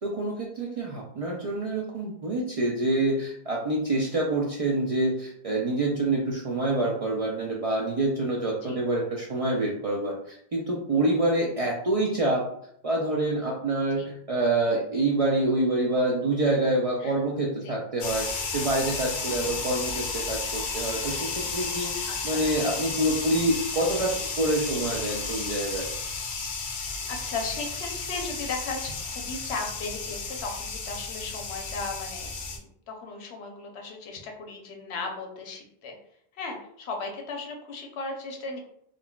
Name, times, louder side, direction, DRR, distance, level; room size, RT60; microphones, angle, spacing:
voice 1, 0.0-12.5 12.8-25.9, right 2 dB, 55° right, -3 dB, 0.4 m, -27 dB
sound 1, 18.0-32.6, left 4 dB, 60° left, 0.6 m, -33 dB
voice 2, 19.3-19.7 22.0-22.4 27.1-36.0 36.3-38.6, left 3 dB, 90° left, 2 dB, 0.9 m, -36 dB
3.7 x 2.2 x 2.2 m, 0.71 s
omnidirectional pair, 1.1 m